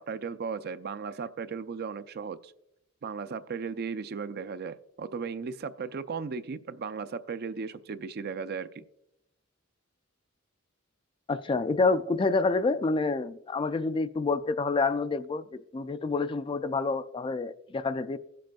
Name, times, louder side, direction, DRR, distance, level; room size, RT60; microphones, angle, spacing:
voice 1, 0.0-2.5 3.0-8.8, right 5 dB, 50° right, 0.4 m, -36 dB
voice 2, 11.3-18.2, left 3 dB, 25° left, 0.3 m, -28 dB
17.5 x 7.6 x 2.3 m
head